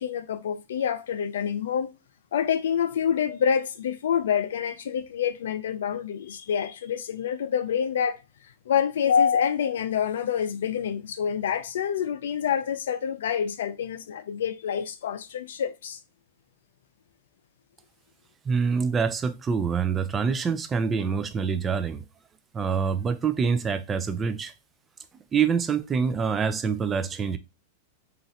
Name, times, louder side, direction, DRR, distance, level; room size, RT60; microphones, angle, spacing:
voice 1, 0.0-1.9 2.3-8.2 8.7-16.0, left 8 dB, 80° left, 0.4 m, -27 dB
voice 2, 18.5-22.0 22.5-24.5 25.3-27.4, right 6 dB, 20° right, 0.3 m, -26 dB
3.0 x 2.4 x 2.7 m
hypercardioid pair, 135°, 0 cm